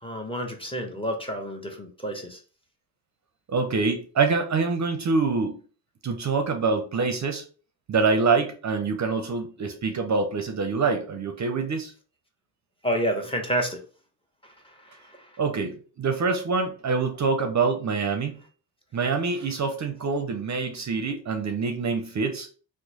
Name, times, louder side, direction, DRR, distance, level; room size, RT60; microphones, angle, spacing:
voice 1, 0.0-2.4 12.8-13.8 14.6-15.3, equal, 10° left, 3 dB, 0.8 m, -29 dB
voice 2, 3.5-5.6 6.0-7.4 7.9-11.9 15.4-18.4 18.9-22.5, right 4 dB, 40° right, 5 dB, 0.6 m, -25 dB
3.0 x 2.1 x 3.9 m, 0.39 s
cardioid pair, 75°, 43 cm